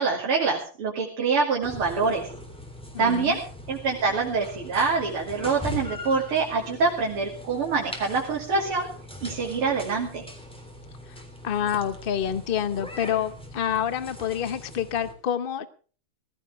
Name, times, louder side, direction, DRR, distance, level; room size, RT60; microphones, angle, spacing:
voice 1, 0.0-2.3 3.0-3.4 3.7-8.9 9.2-10.2, right 4 dB, 80° right, -3 dB, 3.5 m, -25 dB
sound 1, 1.6-15.1, left 1 dB, ahead, 3.3 m, -41 dB
voice 2, 2.9-3.4 11.4-15.7, left 9 dB, 75° left, 13 dB, 0.5 m, -27 dB
19.0 x 15.5 x 3.5 m, 0.39 s
omnidirectional pair, 2.4 m